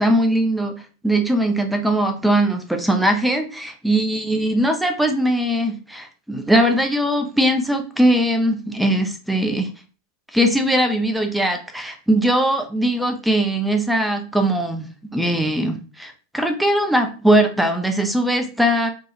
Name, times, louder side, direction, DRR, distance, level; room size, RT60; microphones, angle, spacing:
voice 1, 0.0-9.7 10.3-14.9 15.1-18.9, right 1 dB, 5° right, 5 dB, 0.4 m, -20 dB
3.1 x 2.1 x 2.8 m, 0.36 s
figure-of-eight pair, 90°, 0 cm